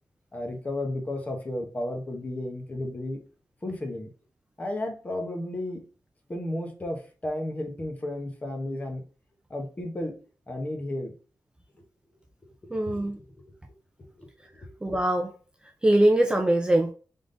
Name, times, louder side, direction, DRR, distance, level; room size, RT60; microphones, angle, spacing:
voice 1, 0.3-3.2 3.6-4.1 4.6-5.9 6.3-9.0 9.5-10.2 10.5-11.1 12.8-13.3 14.0-14.7, left 1 dB, 25° left, 1.1 m, -33 dB
voice 2, 12.7-13.2 14.8-15.3 15.8-16.9, right 1 dB, 15° right, 0.5 m, -22 dB
3.7 x 3.7 x 3.9 m
wide cardioid pair, 165°, 6 cm